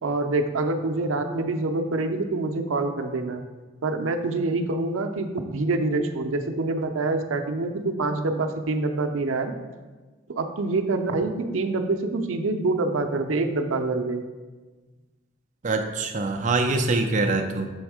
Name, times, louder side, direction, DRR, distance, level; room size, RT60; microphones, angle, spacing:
voice 1, 0.0-3.4 3.8-9.5 10.3-14.2, right 3 dB, 85° right, 6 dB, 0.6 m, -26 dB
voice 2, 15.6-17.7, right 3 dB, 40° right, 4 dB, 0.5 m, -24 dB
7.1 x 3.5 x 4.8 m, 1.3 s
head